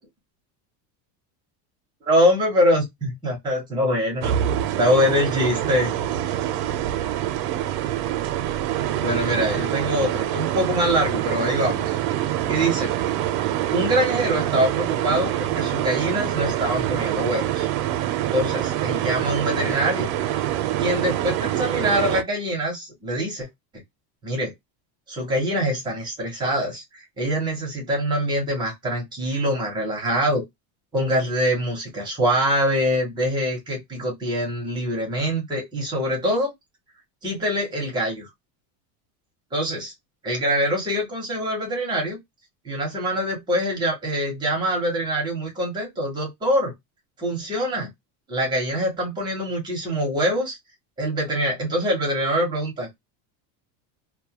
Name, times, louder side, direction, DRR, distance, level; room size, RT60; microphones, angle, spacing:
voice 1, 2.0-4.3 4.8-5.9 9.0-12.0 12.5-12.9 13.7-17.7 18.3-20.1 20.8-23.5 24.2-24.5 25.1-30.4 30.9-36.5 37.2-38.3 39.5-39.9 40.2-42.2 42.6-46.7 47.2-47.9 48.3-50.6 51.0-53.0, equal, 10° right, 0.6 m, -24 dB
sound 1, 4.2-22.2, right 12 dB, 70° right, 0.6 m, -25 dB
2.2 x 2.1 x 2.7 m
cardioid pair, 175°, 48 cm